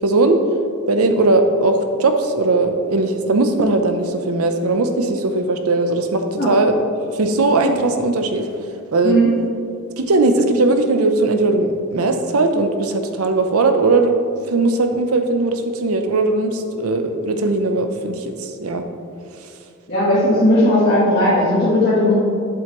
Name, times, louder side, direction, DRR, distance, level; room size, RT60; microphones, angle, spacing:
voice 1, 0.0-0.4 0.9-6.8 7.2-8.5 8.9-9.2 10.0-14.2 14.5-18.8, right 2 dB, 85° right, 6 dB, 0.7 m, -18 dB
voice 2, 19.9-22.1, left 1 dB, 50° left, -10 dB, 1.5 m, -16 dB
7.8 x 7.6 x 3.1 m, 2.4 s
head